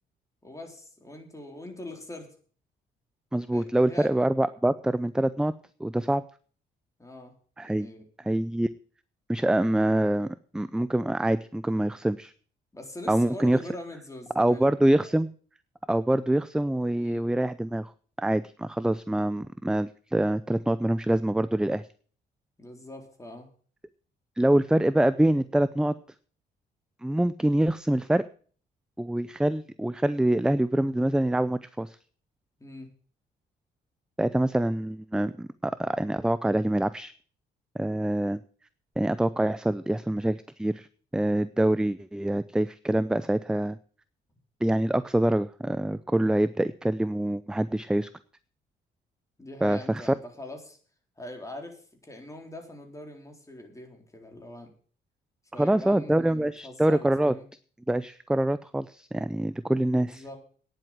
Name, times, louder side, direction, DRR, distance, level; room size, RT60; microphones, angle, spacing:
voice 1, 0.4-2.3 3.5-4.1 7.0-7.3 7.6-8.3 12.7-15.2 16.9-17.3 22.6-23.5 32.6-32.9 49.4-50.8 51.2-54.7 55.5-57.5 60.0-60.4, left 1 dB, 15° left, 3 dB, 3.9 m, -43 dB
voice 2, 3.3-5.5 5.8-6.2 7.6-7.9 8.2-8.7 9.3-12.3 13.1-13.6 14.4-15.3 15.9-17.9 18.2-21.9 24.4-25.9 27.0-28.2 29.0-32.0 34.2-37.1 37.8-38.4 39.0-40.9 41.1-43.8 44.6-48.1 49.6-50.1 55.6-57.3 57.9-60.2, right 1 dB, 5° right, 15 dB, 0.5 m, -25 dB
9.7 x 7.8 x 9.0 m, 0.43 s
cardioid pair, 90°, 20 cm